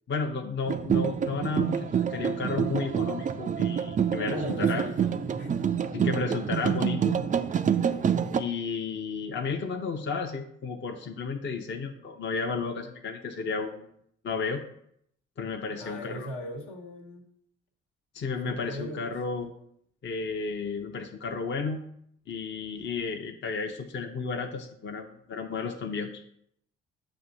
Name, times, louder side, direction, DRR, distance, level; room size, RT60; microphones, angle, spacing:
voice 1, 0.1-4.8 5.9-7.2 8.3-13.9 14.2-14.6 15.4-16.3 18.1-19.5 20.0-21.8 22.3-26.1, left 4 dB, 30° left, 3 dB, 0.7 m, -32 dB
sound 1, 0.7-8.4, right 8 dB, 25° right, 0.4 m, -27 dB
voice 2, 4.3-5.0 5.4-5.7 15.7-17.2 18.4-19.1, equal, 65° left, 0 dB, 1.3 m, -38 dB
6.9 x 2.7 x 5.2 m, 0.70 s
hypercardioid pair, 45°, 36 cm